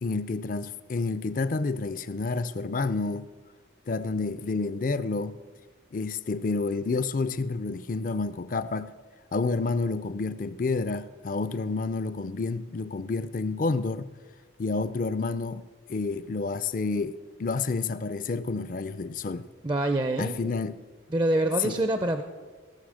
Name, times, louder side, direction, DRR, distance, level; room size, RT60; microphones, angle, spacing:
voice 1, 0.0-3.3 3.9-5.4 5.9-8.9 9.3-14.1 14.6-19.5 20.2-20.8 21.6-21.8, left 3 dB, 45° left, 0.4 m, -29 dB
voice 2, 19.6-20.3 21.1-22.2, right 1 dB, 25° right, 0.4 m, -25 dB
16.5 x 6.8 x 6.3 m
head